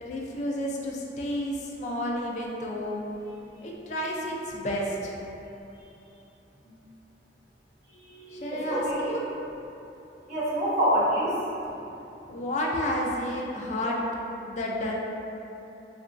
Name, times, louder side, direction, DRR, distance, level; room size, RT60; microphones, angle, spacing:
voice 1, 0.0-3.0 3.6-5.2 8.3-9.3 12.3-14.0 14.4-14.9, left 1 dB, 40° left, -2 dB, 0.3 m, -31 dB
voice 2, 8.0-9.1 10.3-11.3, equal, 45° right, -11 dB, 0.9 m, -27 dB
2.9 x 2.3 x 2.4 m, 2.9 s
head